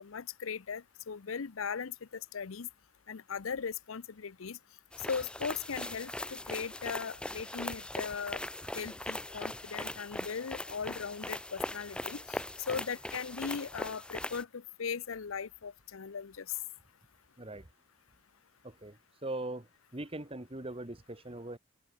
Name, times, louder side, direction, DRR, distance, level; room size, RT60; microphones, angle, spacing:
voice 1, 0.0-2.7 3.1-4.6 5.1-8.4 8.7-16.6, left 6 dB, 90° left, 0.7 m, -38 dB
sound 1, 4.9-14.4, left 1 dB, 5° left, 0.5 m, -40 dB
voice 2, 17.4-17.7 18.6-21.6, right 2 dB, 30° right, 1.5 m, -41 dB
open air
head